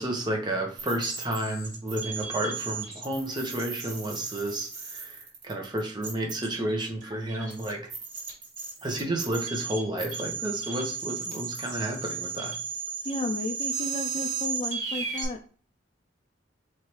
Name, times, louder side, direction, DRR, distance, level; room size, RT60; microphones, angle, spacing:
voice 1, 0.0-7.8 8.8-12.5, right 1 dB, 20° right, 1 dB, 1.0 m, -31 dB
sound 1, 0.8-15.2, right 6 dB, 40° right, 2.3 m, -35 dB
voice 2, 13.0-15.4, left 2 dB, 30° left, 4 dB, 0.3 m, -33 dB
4.5 x 3.3 x 3.2 m, 0.42 s
head